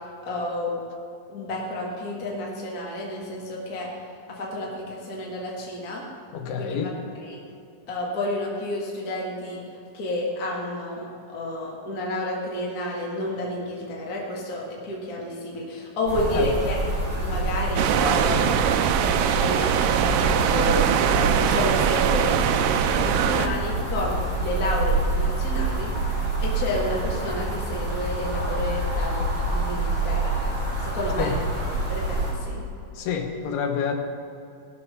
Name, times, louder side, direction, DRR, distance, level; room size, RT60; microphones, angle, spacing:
voice 1, 0.2-0.7 1.3-3.9 4.3-6.0 6.6-6.8 7.1-7.4 7.9-9.6 9.9-16.8 17.2-18.5 19.3-20.8 21.1-25.9 26.4-32.6, left 1 dB, 45° left, -4 dB, 1.2 m, -30 dB
voice 2, 6.3-6.9 16.3-16.5 31.2-31.3 33.0-33.9, left 7 dB, 85° left, 3 dB, 3.1 m, -27 dB
sound 1, 16.1-32.3, right 2 dB, 30° right, 4.4 m, -27 dB
sound 2, 17.8-23.5, right 9 dB, 80° right, 2.1 m, -22 dB
18.0 x 6.6 x 6.2 m, 2.6 s
omnidirectional pair, 4.5 m